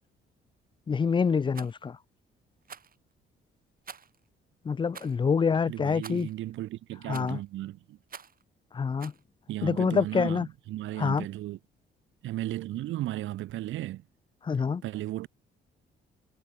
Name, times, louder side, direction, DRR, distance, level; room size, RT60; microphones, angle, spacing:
voice 1, 0.9-2.0 4.6-6.3 7.1-7.4 8.7-9.1 9.6-10.5 11.0-11.3 14.4-14.8, left 5 dB, 25° left, 0.4 m, -26 dB
Rattle, 1.5-1.7 2.6-3.0 3.8-4.2 4.9-5.2 6.0-6.3 7.1-7.4 8.1-8.4 9.0-9.2, right 6 dB, 45° right, 6.4 m, -46 dB
voice 2, 5.7-8.0 9.5-11.6 12.2-14.0 14.8-15.3, right 15 dB, 75° right, 0.7 m, -35 dB
cardioid pair, 90°, 20 cm